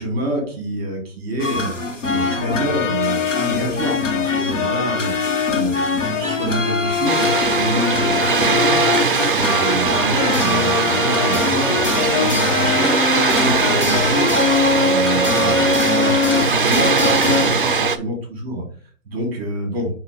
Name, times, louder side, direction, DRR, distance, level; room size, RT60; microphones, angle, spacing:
voice 1, 0.0-14.3 14.7-18.6 19.0-19.9, right 1 dB, 15° right, 1 dB, 2.9 m, -27 dB
sound 1, 1.4-17.8, left 4 dB, 70° left, 1.8 m, -21 dB
Water, 7.1-18.0, right 5 dB, 45° right, 0.4 m, -20 dB
9.3 x 3.1 x 3.4 m, 0.43 s
hypercardioid pair, 175°, 39 cm